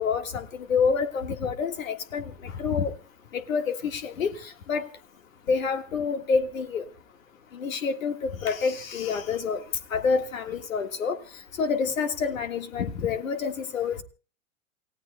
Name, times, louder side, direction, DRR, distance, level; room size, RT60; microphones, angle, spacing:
voice 1, 0.0-2.3 2.6-2.9 3.3-4.3 4.7-4.9 5.5-6.8 7.5-9.6 9.9-11.2 11.6-14.0, left 5 dB, 85° left, 8 dB, 1.8 m, -27 dB
28.5 x 15.5 x 2.3 m, 0.36 s
hypercardioid pair, 115°, 39 cm